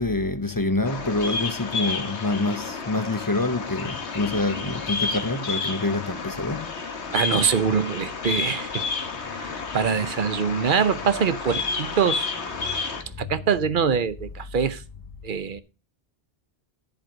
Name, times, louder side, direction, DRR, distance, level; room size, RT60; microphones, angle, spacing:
voice 1, 0.0-6.7 11.5-11.6 11.9-12.1, left 2 dB, 20° left, 0.7 m, -26 dB
Bird vocalization bird call bird song, 0.9-13.0, left 4 dB, 85° left, 1.7 m, -31 dB
voice 2, 7.1-8.9 9.3-12.3 12.7-12.9 13.2-14.8 15.2-15.6, right 6 dB, 55° right, 0.9 m, -24 dB
10.5 x 5.2 x 6.3 m
omnidirectional pair, 1.1 m